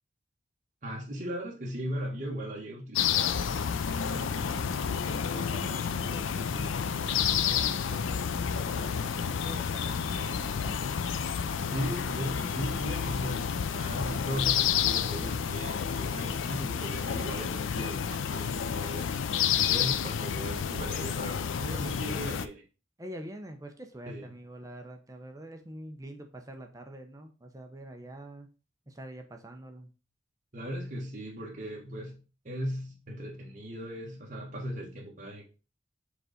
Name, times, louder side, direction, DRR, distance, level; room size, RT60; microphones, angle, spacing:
voice 1, 0.8-3.3 11.7-19.1 19.5-22.6 24.1-24.3 30.5-32.2 32.4-35.4, equal, 40° right, 1.4 m, -38 dB
sound 1, 3.0-22.5, left 7 dB, 90° left, 0.5 m, -30 dB
voice 2, 4.1-4.8 5.0-10.8 19.5-19.9 23.0-28.5 28.9-29.9, right 1 dB, 20° right, 0.7 m, -45 dB
4.9 x 3.9 x 5.0 m
head